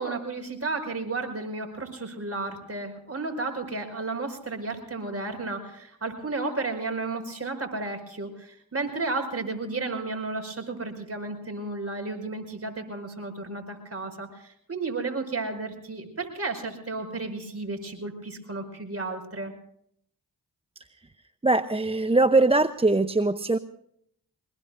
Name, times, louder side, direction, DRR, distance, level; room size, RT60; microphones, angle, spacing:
voice 1, 0.0-19.5, right 3 dB, 35° right, 4 dB, 5.2 m, -33 dB
voice 2, 21.4-23.6, right 2 dB, 15° right, 11 dB, 0.7 m, -21 dB
23.5 x 20.5 x 2.6 m, 0.69 s
supercardioid pair, 45°, 41 cm